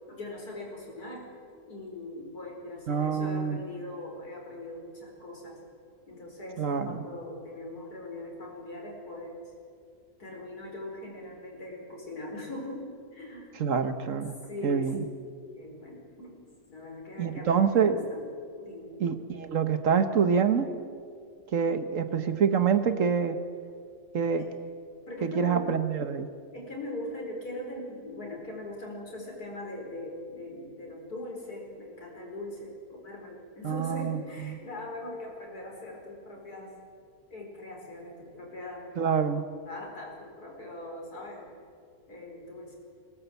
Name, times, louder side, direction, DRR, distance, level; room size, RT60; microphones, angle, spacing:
voice 1, 0.1-1.3 1.7-5.6 6.1-9.4 10.2-13.5 14.4-15.2 15.5-18.3 18.6-19.0 24.4-24.5 25.1-25.7 26.5-36.8 37.3-38.9 39.7-41.5 42.1-42.8, left 1 dB, 90° left, 0 dB, 5.3 m, -41 dB
voice 2, 2.9-3.6 6.6-7.0 13.6-14.4 14.6-15.0 17.2-18.0 19.0-20.7 21.5-23.4 24.1-24.5 25.2-26.3 33.6-34.6 39.0-39.4, right 6 dB, 60° right, 10 dB, 1.4 m, -26 dB
21.5 x 18.5 x 8.2 m, 2.3 s
omnidirectional pair, 1.6 m